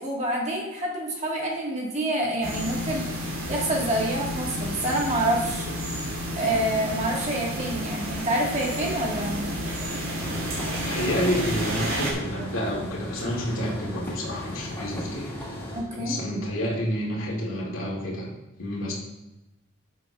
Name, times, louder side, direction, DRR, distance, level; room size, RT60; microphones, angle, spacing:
voice 1, 0.0-5.7 6.3-9.5 15.7-16.2, right 1 dB, 35° right, -2 dB, 1.5 m, -27 dB
sound 1, 2.4-12.1, equal, 85° right, 2.9 m, -31 dB
sound 2, 10.2-15.8, equal, 10° left, 2.0 m, -36 dB
voice 2, 10.6-15.6 15.9-18.3 18.6-18.9, equal, 85° left, -3 dB, 2.2 m, -29 dB
12.5 x 7.9 x 2.4 m, 0.99 s
head